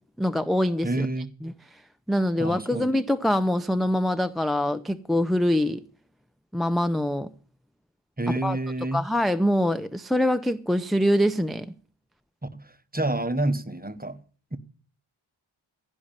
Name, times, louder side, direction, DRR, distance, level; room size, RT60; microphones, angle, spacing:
voice 1, 0.2-1.1 1.4-1.5 2.1-5.8 6.5-7.3 8.4-8.6 8.9-11.7, left 1 dB, ahead, 0.6 m, -24 dB
voice 2, 0.8-1.3 2.4-2.9 8.2-9.1 12.5-14.2 14.5-14.6, right 2 dB, 20° right, 1.0 m, -28 dB
16.0 x 5.4 x 8.8 m
wide cardioid pair, 45°, 49 cm